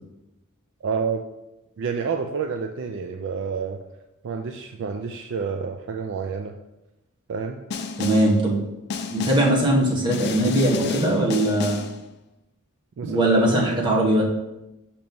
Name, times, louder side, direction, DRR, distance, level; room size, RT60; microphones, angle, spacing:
voice 1, 0.8-1.2 1.8-3.8 4.2-6.5 7.3-7.6 13.0-13.4, right 5 dB, 55° right, 4 dB, 0.4 m, -29 dB
Snare drum, 7.7-8.4 8.9-9.6 10.1-12.0, left 4 dB, 50° left, 0.4 m, -31 dB
voice 2, 8.0-8.6 9.1-11.8 13.0-14.2, right 1 dB, 20° right, -3 dB, 1.2 m, -20 dB
6.2 x 3.0 x 5.3 m, 0.95 s
head